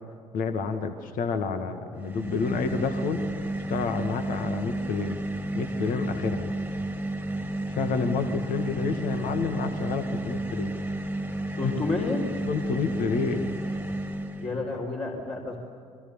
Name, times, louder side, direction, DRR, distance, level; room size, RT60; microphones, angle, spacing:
voice 1, 0.3-3.2 3.7-5.2 5.5-6.5 7.7-10.8 11.6-11.8 12.5-13.5, left 5 dB, 55° left, 7 dB, 1.9 m, -29 dB
sound 1, 2.0-14.6, right 1 dB, 10° right, 2.3 m, -32 dB
voice 2, 11.6-12.2 14.4-15.6, left 3 dB, 35° left, -2 dB, 4.4 m, -30 dB
29.5 x 24.0 x 7.2 m, 2.3 s
figure-of-eight pair, 55°, 17 cm